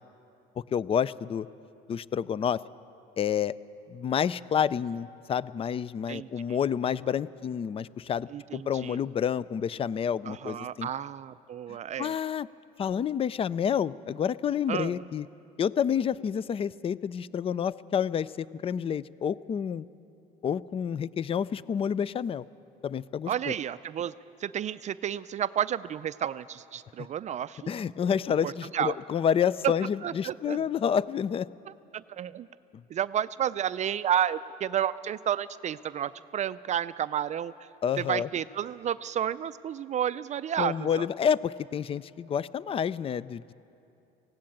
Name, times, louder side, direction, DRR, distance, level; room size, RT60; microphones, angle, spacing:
voice 1, 0.7-1.5 1.9-2.6 3.2-3.6 3.9-10.9 12.0-12.5 12.8-15.3 15.6-19.8 20.4-22.4 22.8-23.5 27.7-31.5 37.8-38.3 40.6-43.5, left 8 dB, 35° left, 19 dB, 0.4 m, -29 dB
voice 2, 6.1-6.6 8.3-9.0 10.3-12.2 14.7-15.1 23.3-24.1 24.4-27.7 28.4-29.0 29.6-29.7 30.0-30.6 31.9-32.5 32.9-37.7 38.0-41.1, right 10 dB, 45° right, 14 dB, 0.4 m, -31 dB
18.0 x 16.5 x 8.7 m, 2.7 s
cardioid pair, 110°, 17 cm